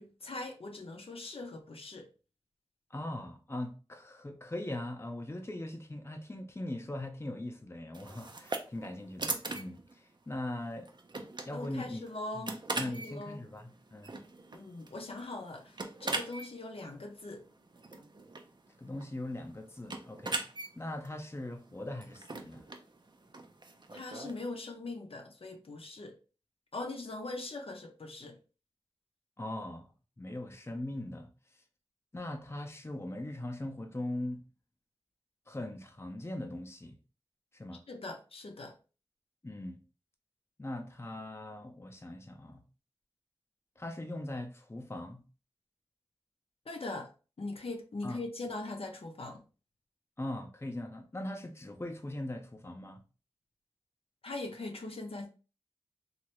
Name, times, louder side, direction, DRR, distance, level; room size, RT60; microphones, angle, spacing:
voice 1, 0.0-2.1 11.5-12.6 12.9-13.4 14.5-17.4 23.9-26.2 26.7-28.4 37.9-38.8 46.7-47.1 47.4-49.4 54.2-55.3, left 2 dB, 75° left, 0.6 m, -41 dB
voice 2, 2.9-10.9 11.4-12.0 12.3-14.1 18.8-20.4 20.8-22.6 29.4-29.9 30.2-31.3 32.1-34.4 35.5-37.0 37.5-37.8 39.4-39.8 40.6-42.6 43.8-45.2 48.0-48.2 50.2-53.0, left 1 dB, 25° left, 0.5 m, -40 dB
sound 1, 7.9-24.4, right 2 dB, 50° right, 0.5 m, -42 dB
3.1 x 2.4 x 3.0 m
wide cardioid pair, 55°, 10 cm